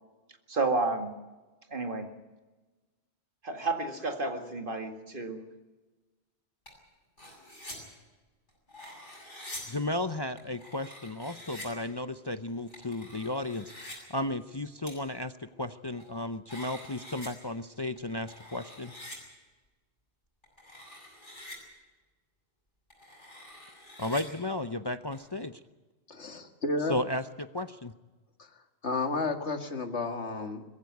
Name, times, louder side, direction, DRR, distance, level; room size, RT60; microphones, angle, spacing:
voice 1, 0.5-1.1 1.7-2.1 3.4-5.5, right 3 dB, 50° right, 6 dB, 2.2 m, -31 dB
sound 1, 6.7-6.8 7.2-7.8 8.5-9.6 10.4-11.7 12.6-14.0 14.9-15.0 15.7-16.2 16.5-17.3 18.0-19.2 20.4-21.6 22.9-24.2 25.1-25.2, left 1 dB, 45° left, 7.6 m, -46 dB
voice 2, 9.7-13.7 14.1-15.3 15.6-18.9 24.0-25.6 26.9-27.9, left 1 dB, 30° left, 10 dB, 0.6 m, -34 dB
voice 3, 26.1-27.0 28.8-30.6, left 3 dB, 85° left, 7 dB, 2.2 m, -32 dB
21.5 x 15.0 x 9.4 m, 1.2 s
omnidirectional pair, 1.1 m